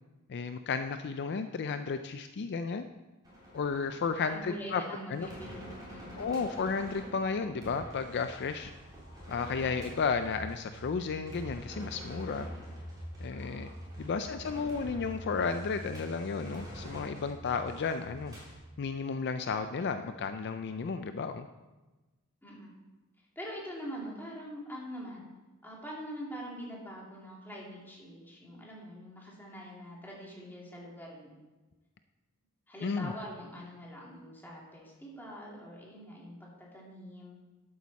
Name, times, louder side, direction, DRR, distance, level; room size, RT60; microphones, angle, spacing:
voice 1, 0.3-2.8 3.5-4.8 5.1-5.3 6.1-8.7 9.3-12.5 13.2-13.7 14.0-18.4 18.8-21.5 32.8-33.1, left 5 dB, 50° left, 9 dB, 0.4 m, -33 dB
sound 1, 3.2-18.6, equal, 20° right, 3.5 m, -45 dB
voice 2, 4.2-6.3 14.0-14.2 22.4-22.7 23.4-25.3 25.6-31.4 32.7-37.4, equal, 10° left, -4 dB, 2.6 m, -44 dB
12.0 x 8.6 x 4.1 m, 1.2 s
head